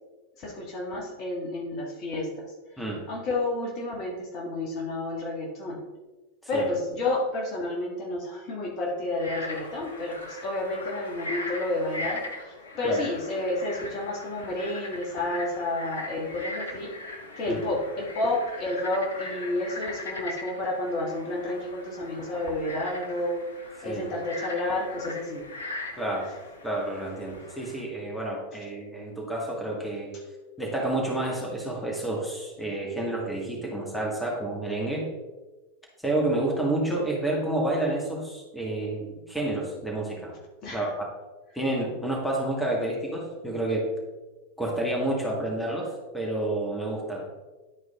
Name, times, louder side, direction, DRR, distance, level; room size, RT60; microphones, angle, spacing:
voice 1, 0.4-5.8 6.5-16.9 17.4-23.4 23.8-25.4 30.1-30.2 40.6-40.8, left 2 dB, 40° left, -2 dB, 1.9 m, -30 dB
Frog, 9.1-27.8, left 2 dB, 70° left, 1.1 m, -40 dB
voice 2, 25.9-26.3 26.6-30.1 30.6-35.1 36.0-40.4 40.7-41.1 41.5-43.9 44.6-47.3, right 2 dB, 5° left, -2 dB, 1.8 m, -29 dB
11.0 x 4.5 x 3.8 m, 1.2 s
figure-of-eight pair, 90°, 0 cm